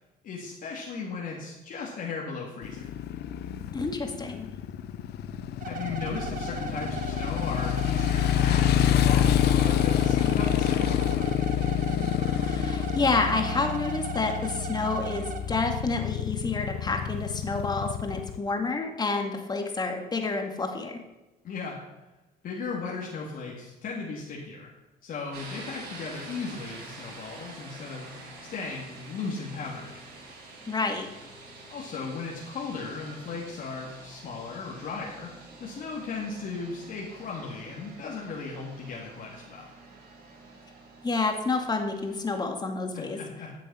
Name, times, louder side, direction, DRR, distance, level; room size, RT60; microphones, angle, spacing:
voice 1, 0.2-2.8 5.7-11.3 21.4-21.8 22.4-24.7 25.0-28.1 28.5-30.0 31.7-35.3 35.6-39.7 42.9-43.5, left 4 dB, 55° left, -3 dB, 2.3 m, -36 dB
Motorcycle, 2.6-18.4, left 10 dB, 75° left, 0.8 m, -27 dB
voice 2, 3.7-4.5 12.5-21.0 30.7-31.1 41.0-43.2, left 3 dB, 25° left, 4 dB, 2.0 m, -29 dB
sound 1, 5.6-15.4, right 6 dB, 50° right, 1.3 m, -38 dB
sound 2, 25.3-42.4, right 2 dB, 65° right, 5.0 m, -47 dB
14.0 x 7.6 x 5.6 m, 1.1 s
cardioid pair, 110°, 17 cm